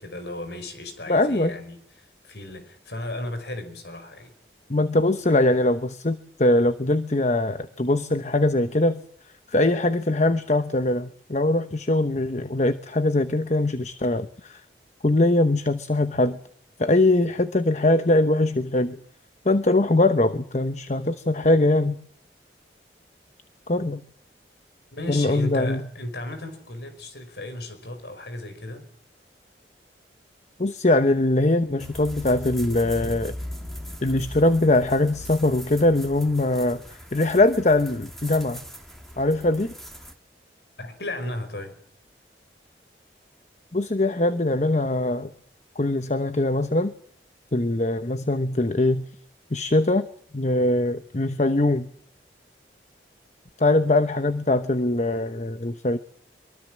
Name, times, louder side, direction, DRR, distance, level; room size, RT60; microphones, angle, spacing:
voice 1, 0.0-4.3 24.9-28.9 40.8-41.8, left 1 dB, 70° left, 5.2 m, -35 dB
voice 2, 1.1-1.5 4.7-9.0 9.5-14.6 15.0-16.4 16.8-19.0 19.4-22.0 23.7-24.0 25.1-25.8 30.6-33.3 34.0-38.6 39.2-39.7 43.7-45.3 45.8-46.9 47.5-49.1 49.5-50.1 50.3-51.9 53.6-56.0, left 2 dB, 40° left, 1.0 m, -22 dB
sound 1, 31.8-40.1, equal, ahead, 2.8 m, -39 dB
23.5 x 23.5 x 7.5 m
head